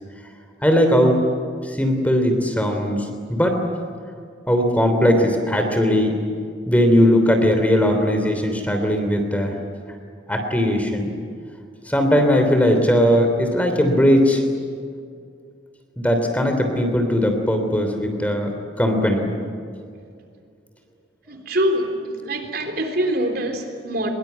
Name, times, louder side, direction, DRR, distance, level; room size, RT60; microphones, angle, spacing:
voice 1, 0.6-1.2 1.7-3.6 4.5-6.2 6.7-9.5 10.3-11.1 11.9-14.4 16.0-18.5 18.8-19.3, equal, 10° left, 5 dB, 3.1 m, -19 dB
voice 2, 21.3-24.1, equal, 55° right, 5 dB, 3.7 m, -24 dB
24.0 x 22.5 x 9.4 m, 2.3 s
head